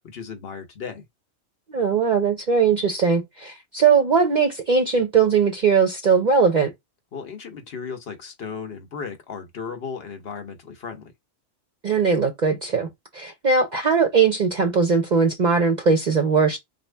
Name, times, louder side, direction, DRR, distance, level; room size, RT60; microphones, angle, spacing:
voice 1, 0.0-1.0 7.1-11.1, left 6 dB, 60° left, 1.1 m, -35 dB
voice 2, 1.7-6.7 11.8-16.6, right 5 dB, 50° right, 0.7 m, -20 dB
4.1 x 2.6 x 3.3 m
omnidirectional pair, 1.2 m